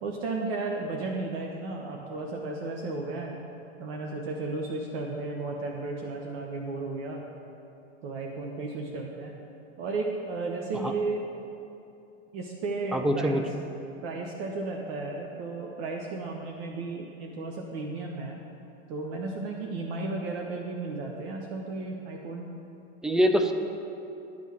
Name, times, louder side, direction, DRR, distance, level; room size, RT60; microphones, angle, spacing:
voice 1, 0.0-3.4 3.8-7.2 8.0-9.3 9.8-11.2 12.3-13.4 14.0-18.4 18.9-22.5, right 3 dB, 60° right, 1 dB, 0.9 m, -34 dB
voice 2, 12.9-13.4 23.0-23.5, equal, ahead, 6 dB, 0.3 m, -23 dB
11.0 x 3.7 x 7.4 m, 2.8 s
hypercardioid pair, 100°, 33 cm